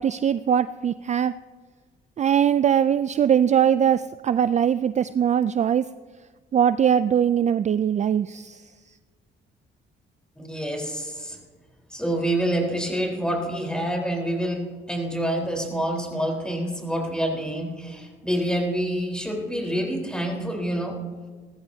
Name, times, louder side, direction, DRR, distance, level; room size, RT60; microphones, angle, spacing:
voice 1, 0.0-1.3 2.2-5.9 6.5-8.7, right 9 dB, 35° right, 13 dB, 0.4 m, -21 dB
voice 2, 10.4-11.4 11.9-14.6 14.9-21.0, right 1 dB, 5° left, 0 dB, 4.0 m, -27 dB
19.5 x 14.5 x 2.8 m, 1.4 s
cardioid pair, 90°, 20 cm